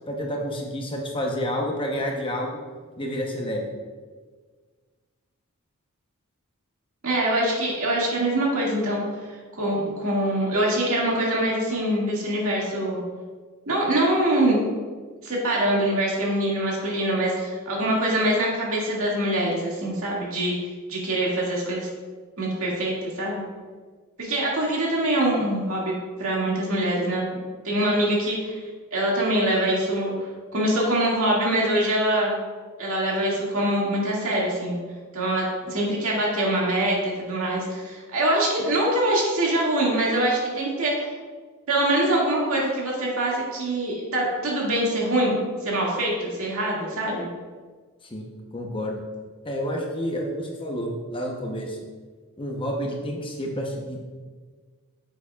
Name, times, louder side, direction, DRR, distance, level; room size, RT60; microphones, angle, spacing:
voice 1, 0.1-2.6 3.0-3.7 48.0-49.0 49.4-51.8 52.4-54.0, equal, 25° left, 0 dB, 0.8 m, -29 dB
voice 2, 7.0-9.0 9.5-13.0 13.7-14.6 15.2-21.9 22.4-23.4 24.2-25.9 26.2-27.2 27.6-28.6 28.9-30.1 30.5-32.4 32.8-34.8 35.1-41.1 41.7-47.3, right 1 dB, 70° right, -4 dB, 2.1 m, -24 dB
9.3 x 7.0 x 2.4 m, 1.5 s
head